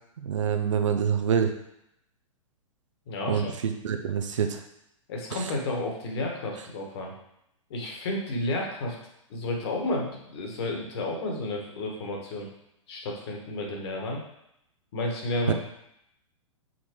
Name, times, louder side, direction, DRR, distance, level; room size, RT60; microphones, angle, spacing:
voice 1, 0.2-1.5 3.3-4.6 15.5-15.6, right 7 dB, 65° right, 6 dB, 0.6 m, -26 dB
voice 2, 3.1-3.5 5.1-7.1 7.7-8.9 9.3-12.5 12.9-14.2 14.9-15.5, left 2 dB, 50° left, 0 dB, 1.7 m, -31 dB
5.9 x 4.2 x 4.7 m, 0.80 s
figure-of-eight pair, 105°, 17 cm